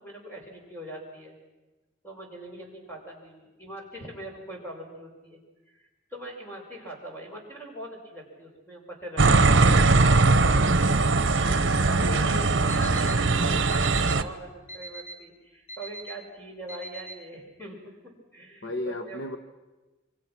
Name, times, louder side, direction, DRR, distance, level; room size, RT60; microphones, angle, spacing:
voice 1, 0.0-1.3 2.0-5.4 5.7-9.9 11.4-17.9 18.3-19.2, right 1 dB, 10° left, -1 dB, 5.6 m, -42 dB
sound 1, 9.2-14.2, right 3 dB, 60° right, 1.1 m, -20 dB
voice 2, 12.0-13.0 18.6-19.4, left 1 dB, 70° left, 7 dB, 1.4 m, -35 dB
Alarm, 12.7-13.1 13.7-14.1 14.7-15.1 15.7-16.1 16.7-17.1, right 1 dB, 35° left, 2.9 m, -40 dB
27.5 x 24.5 x 6.1 m, 1.2 s
head